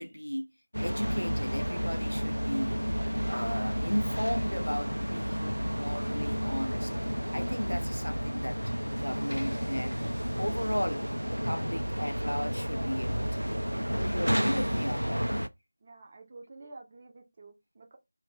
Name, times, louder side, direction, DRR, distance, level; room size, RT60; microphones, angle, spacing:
voice 1, 0.0-2.8 3.3-7.0 7.3-8.6 8.9-10.0 10.4-13.7 14.0-15.3, equal, 80° left, 0.3 m, -35 dB
sound 1, 0.7-15.5, equal, 85° right, 0.3 m, -31 dB
voice 2, 15.8-18.0, right 3 dB, 25° right, 0.6 m, -50 dB
2.5 x 2.1 x 3.7 m
figure-of-eight pair, 165°, 0 cm